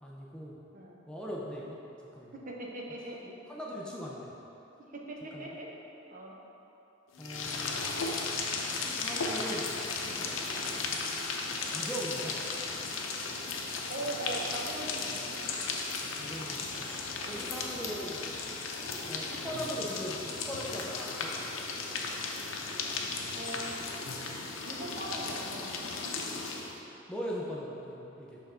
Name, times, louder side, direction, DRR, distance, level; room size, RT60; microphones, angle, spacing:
voice 1, 0.0-0.6 1.1-1.8 2.1-2.3 3.1-3.2 3.5-4.3 5.3-5.5 7.2-8.0 8.8-9.7 11.4-12.3 16.2-16.9 17.2-18.3 19.0-21.3 27.1-28.4, equal, 5° left, -4 dB, 0.5 m, -40 dB
voice 2, 2.3-3.2 4.9-5.7 6.1-6.4 10.0-10.3 13.9-15.4 17.2-17.5 23.3-23.8 24.6-26.3, right 1 dB, 45° right, -2 dB, 0.8 m, -40 dB
sound 1, 7.1-26.8, left 4 dB, 90° left, 0.6 m, -35 dB
5.5 x 3.6 x 5.5 m, 2.9 s
head